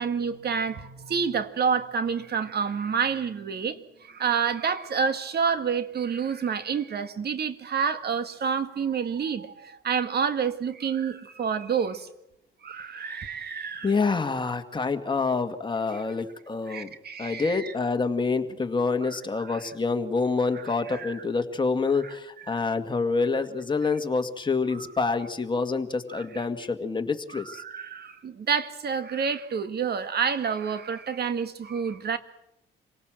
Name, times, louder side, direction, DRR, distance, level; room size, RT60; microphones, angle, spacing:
voice 1, 0.0-3.8 4.1-12.1 12.6-13.9 16.7-17.7 19.3-19.6 20.9-21.2 22.5-22.6 26.1-26.2 27.3-32.2, right 6 dB, 55° right, 1.8 m, -28 dB
voice 2, 13.8-16.9 17.2-27.6, left 4 dB, 25° left, 2.1 m, -27 dB
26.5 x 18.0 x 7.7 m
cardioid pair, 90°, 20 cm